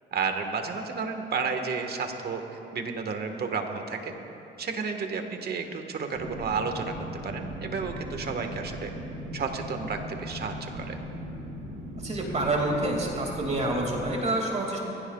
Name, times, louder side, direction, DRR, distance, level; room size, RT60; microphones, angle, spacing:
voice 1, 0.1-2.4 2.7-4.1 4.6-6.9 7.2-8.9 9.3-11.0, right 5 dB, 50° right, 5 dB, 1.5 m, -31 dB
sound 1, 6.1-14.1, equal, 75° right, 1.5 m, -38 dB
voice 2, 12.0-14.8, right 2 dB, 35° right, 0 dB, 2.3 m, -27 dB
22.5 x 16.0 x 2.4 m, 2.9 s
cardioid pair, 90°, 20 cm